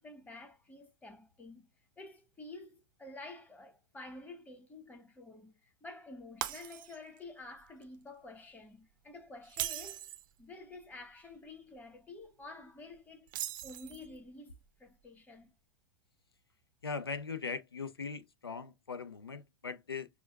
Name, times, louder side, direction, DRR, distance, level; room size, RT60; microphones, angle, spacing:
voice 1, 0.0-1.7 2.0-10.1 10.4-13.3 13.6-15.5, left 2 dB, 15° left, 1.5 m, -50 dB
Shatter, 6.4-7.2 7.6-7.8 9.4-10.3 13.3-14.2, right 13 dB, 60° right, 0.5 m, -39 dB
voice 2, 16.8-20.1, left 5 dB, 90° left, 0.7 m, -40 dB
6.0 x 2.3 x 2.3 m
figure-of-eight pair, 95°, 12 cm